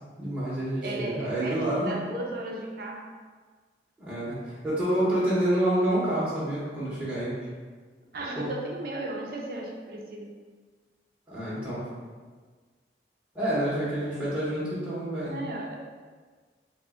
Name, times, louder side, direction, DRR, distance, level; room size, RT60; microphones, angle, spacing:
voice 1, 0.2-1.9 4.0-4.4 4.6-7.3 8.4-8.5 11.3-11.8 13.3-15.4, right 1 dB, 5° right, -10 dB, 0.7 m, -28 dB
voice 2, 0.8-3.1 8.1-10.5 15.2-15.8, right 2 dB, 55° right, 0 dB, 0.5 m, -35 dB
3.5 x 2.1 x 3.6 m, 1.5 s
head